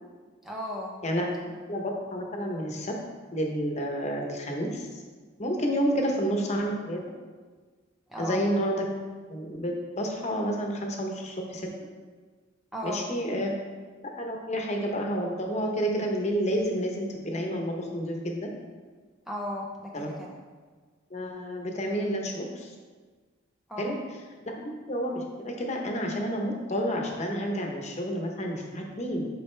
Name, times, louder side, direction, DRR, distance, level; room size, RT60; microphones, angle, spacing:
voice 1, 0.4-1.0 8.1-8.5 12.7-13.1 19.3-20.3 23.7-24.0, left 1 dB, ahead, -2 dB, 0.4 m, -35 dB
voice 2, 1.7-2.9 3.3-5.0 5.4-7.0 8.2-8.8 9.3-11.7 12.8-13.5 14.2-18.5 19.9-20.1 21.1-22.8 23.8-23.9 24.5-29.3, equal, 35° left, 1 dB, 0.9 m, -30 dB
7.5 x 5.4 x 3.3 m, 1.4 s
head